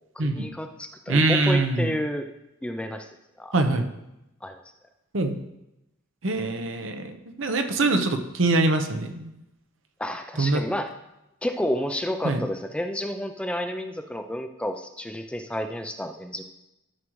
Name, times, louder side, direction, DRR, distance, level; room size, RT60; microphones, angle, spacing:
voice 1, 0.2-2.3 2.6-3.1 3.4-3.5 4.4-4.6 10.0-10.9 11.4-16.4, equal, 5° left, 6 dB, 0.4 m, -30 dB
voice 2, 1.1-1.9 3.5-3.9 5.1-5.4 6.2-9.3 10.4-10.6 12.2-12.4, right 2 dB, 65° right, 6 dB, 0.8 m, -23 dB
13.0 x 6.4 x 3.1 m, 0.90 s
head